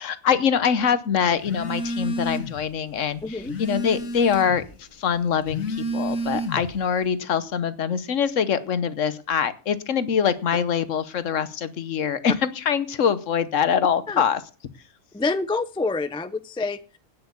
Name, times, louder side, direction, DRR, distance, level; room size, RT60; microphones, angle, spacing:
voice 1, 0.0-14.4, left 7 dB, 70° left, 14 dB, 1.2 m, -24 dB
Telephone, 1.4-2.7 3.0-4.7 5.3-6.8, equal, 85° left, 1.9 m, -30 dB
voice 2, 3.2-3.5 14.1-14.2 15.1-17.0, left 3 dB, 10° left, 12 dB, 0.3 m, -27 dB
9.4 x 7.9 x 8.4 m, 0.37 s
omnidirectional pair, 1.4 m